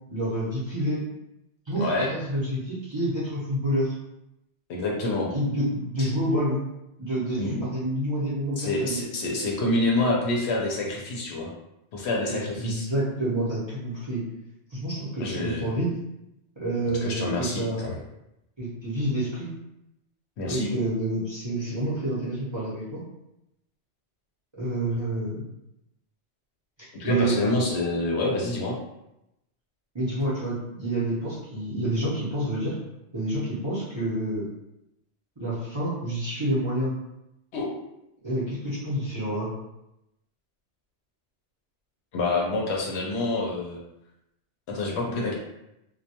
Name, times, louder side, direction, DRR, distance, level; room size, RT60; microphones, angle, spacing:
voice 1, 0.1-1.0 1.7-3.9 5.3-6.6 7.0-9.0 12.3-14.2 14.7-15.9 16.6-18.0 18.6-19.5 20.4-23.0 24.5-25.4 26.8-27.4 29.9-32.8 33.1-34.5 35.4-36.9 38.2-39.5, right 1 dB, 30° right, -9 dB, 0.6 m, -28 dB
voice 2, 1.8-2.1 4.7-5.3 6.0-6.1 7.4-7.6 8.6-11.5 11.9-12.9 15.2-15.7 17.0-18.0 20.4-20.7 27.0-28.8 37.5-37.7 42.1-43.8 44.7-45.3, left 2 dB, 70° left, -2 dB, 0.8 m, -27 dB
2.2 x 2.2 x 2.8 m, 0.87 s
omnidirectional pair, 1.2 m